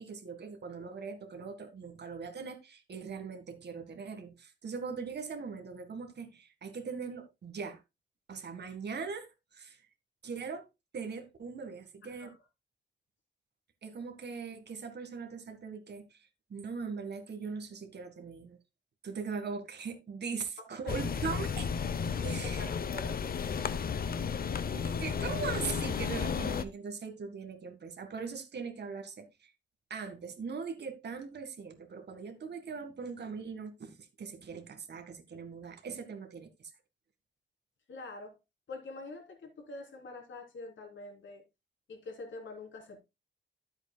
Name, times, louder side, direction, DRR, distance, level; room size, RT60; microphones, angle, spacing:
voice 1, 0.0-7.8 8.3-9.3 9.5-9.8 10.2-10.6 10.9-12.3 13.8-16.2 16.5-18.6 19.0-21.7 22.1-22.7 24.6-29.5 29.9-36.7, right 5 dB, 65° right, 1.8 m, -40 dB
voice 2, 12.0-12.4 20.9-21.0 22.4-23.2 37.9-38.4 38.7-41.4 41.9-43.0, left 2 dB, 90° left, 3.4 m, -45 dB
sound 1, 20.9-26.6, left 6 dB, 50° left, 0.7 m, -33 dB
13.0 x 7.9 x 2.2 m
wide cardioid pair, 170°, 19 cm